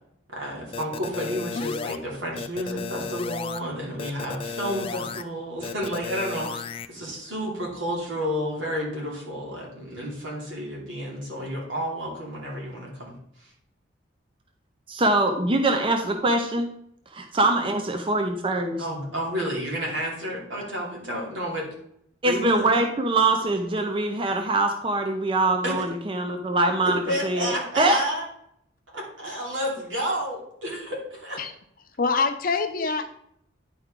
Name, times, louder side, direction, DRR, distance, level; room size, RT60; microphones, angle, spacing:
voice 1, 0.3-6.6 6.9-13.1 13.4-13.5 18.8-21.7 22.2-22.7 25.6-25.7 26.8-28.2 28.9-31.4, equal, 85° right, -3 dB, 2.8 m, -31 dB
sound 1, 0.7-2.0 2.4-3.6 4.0-5.2 5.6-6.9, left 5 dB, 30° left, 0.3 m, -33 dB
voice 2, 14.9-16.7 17.1-18.8 22.2-28.0, right 2 dB, 30° right, 4 dB, 0.6 m, -23 dB
voice 3, 32.0-33.1, left 4 dB, 50° left, 7 dB, 0.7 m, -25 dB
10.0 x 4.7 x 3.7 m, 0.72 s
head